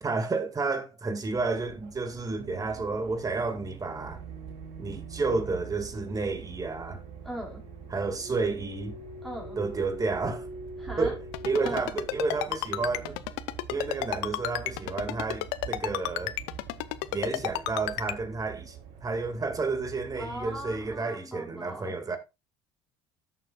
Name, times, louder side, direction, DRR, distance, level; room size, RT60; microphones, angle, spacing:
voice 1, 0.0-4.2 4.8-7.0 7.9-9.0 9.6-10.5 11.0-13.2 13.7-16.3 17.1-18.8 19.0-22.2, right 3 dB, 25° right, 2.1 m, -31 dB
sound 1, 1.2-21.0, right 5 dB, 70° right, 2.6 m, -44 dB
voice 2, 7.2-7.6 9.2-9.6 10.8-11.1 11.6-11.9 20.2-22.0, equal, ahead, 4.0 m, -39 dB
Ringtone, 11.3-18.1, left 19 dB, 80° left, 0.5 m, -31 dB
13.0 x 7.0 x 2.3 m
hypercardioid pair, 75°, 13 cm